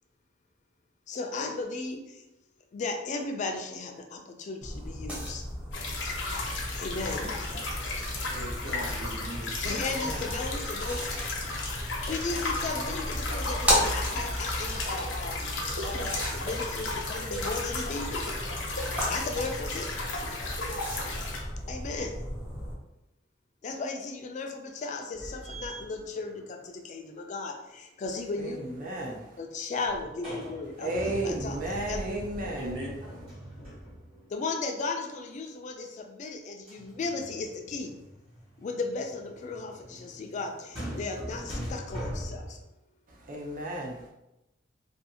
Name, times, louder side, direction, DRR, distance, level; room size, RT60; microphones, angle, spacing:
voice 1, 1.1-2.0 2.7-5.4 6.8-7.2 9.6-11.1 12.1-15.3 15.8-18.4 19.1-20.0 21.7-22.1 23.6-28.6 29.4-32.0 34.3-37.9 38.6-42.6, left 3 dB, 40° left, 4 dB, 0.3 m, -35 dB
sound 1, 4.6-22.7, equal, 5° right, 0.7 m, -35 dB
sound 2, 5.7-21.4, left 2 dB, 85° left, 0.6 m, -34 dB
voice 2, 8.3-9.6 32.6-32.9, right 1 dB, 85° right, -3 dB, 0.8 m, -39 dB
voice 3, 9.6-10.3 28.4-29.3 30.8-32.7 43.1-44.0, right 1 dB, 50° right, 0 dB, 0.5 m, -34 dB
sound 3, 25.1-26.6 29.7-34.3 36.7-42.6, equal, 30° right, 1.1 m, -41 dB
2.5 x 2.4 x 2.7 m, 0.92 s
head